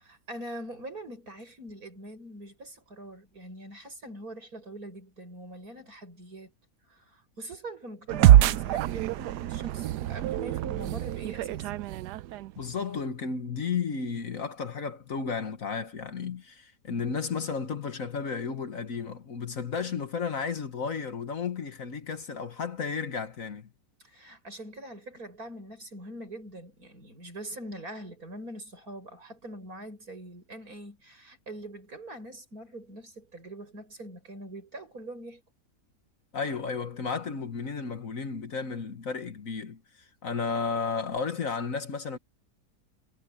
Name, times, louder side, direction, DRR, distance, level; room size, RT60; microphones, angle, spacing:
voice 1, 0.0-6.5 6.9-11.7 24.0-35.4, right 1 dB, 60° right, 7.8 m, -43 dB
sound 1, 8.1-12.7, right 13 dB, 80° right, 1.2 m, -24 dB
voice 2, 12.6-23.7 36.3-42.2, left 5 dB, 55° left, 1.8 m, -33 dB
omnidirectional pair, 1.8 m